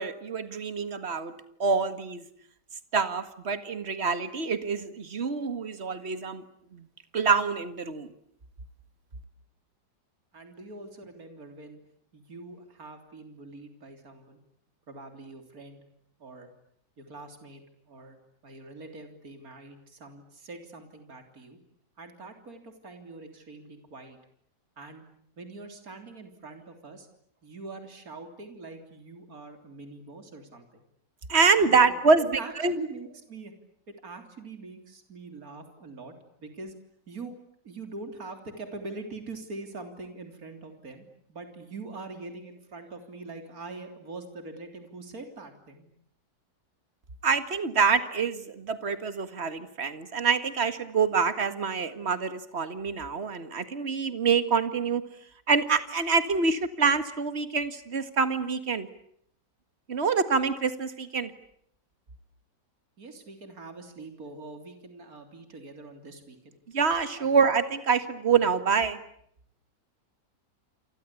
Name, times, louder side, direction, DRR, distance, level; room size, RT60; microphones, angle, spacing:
voice 1, 0.0-2.2 2.9-6.4 6.7-6.8 7.1-8.1 31.3-32.8 47.2-55.0 55.5-58.9 59.9-61.3 66.7-69.0, right 5 dB, 40° right, 10 dB, 2.0 m, -26 dB
voice 2, 10.3-11.8 12.1-14.4 14.9-15.8 16.2-16.5 17.0-17.6 17.9-18.2 18.4-21.6 22.0-24.2 24.8-25.0 25.4-27.1 27.4-30.8 31.6-33.5 33.9-36.1 36.4-36.7 37.1-37.3 37.6-45.9 63.0-66.5 67.2-67.3, right 3 dB, 55° right, 6 dB, 3.8 m, -43 dB
29.0 x 24.0 x 8.5 m, 0.69 s
omnidirectional pair, 1.9 m